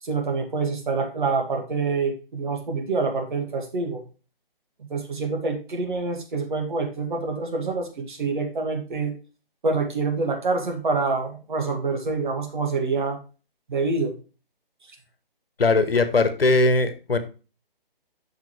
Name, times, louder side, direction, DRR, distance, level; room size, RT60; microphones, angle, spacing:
voice 1, 0.0-4.0 4.9-9.1 9.6-13.2 13.7-14.1, right 4 dB, 55° right, 3 dB, 2.1 m, -26 dB
voice 2, 15.6-17.2, left 3 dB, 75° left, 11 dB, 1.2 m, -20 dB
7.7 x 5.9 x 3.1 m, 0.34 s
figure-of-eight pair, 150°, 29 cm